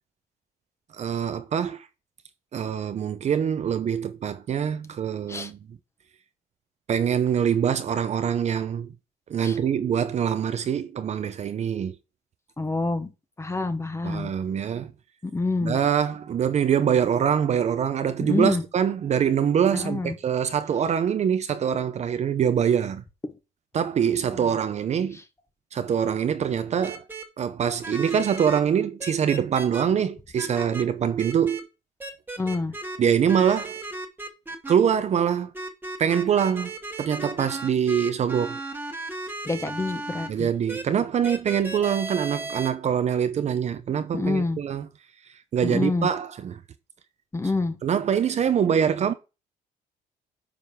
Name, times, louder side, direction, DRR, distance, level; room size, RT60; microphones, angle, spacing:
voice 1, 1.0-1.9 2.5-5.6 6.9-8.9 9.3-11.9 14.0-14.9 15.6-23.0 23.7-25.2 25.7-27.0 27.4-31.6 33.0-33.8 34.7-35.5 36.0-36.7 37.0-38.6 40.3-44.9 45.5-46.6 47.8-49.1, right 8 dB, 40° right, 0.7 m, -24 dB
voice 2, 12.6-13.1 13.4-14.3 15.2-15.8 18.2-18.6 19.7-20.1 23.2-23.3 24.3-24.5 25.1-25.2 32.4-32.7 39.4-40.5 44.1-44.6 45.6-46.1 47.3-47.7, left 3 dB, 15° left, 1.0 m, -27 dB
sound 1, 26.8-27.2 27.8-28.6 29.0-29.8 30.4-30.8 31.2-31.6 32.0-33.0 33.3-34.7 35.5-40.3 40.7-40.8 41.2-42.7, right 2 dB, 10° right, 1.4 m, -35 dB
9.4 x 5.1 x 3.6 m
cardioid pair, 110°, 17 cm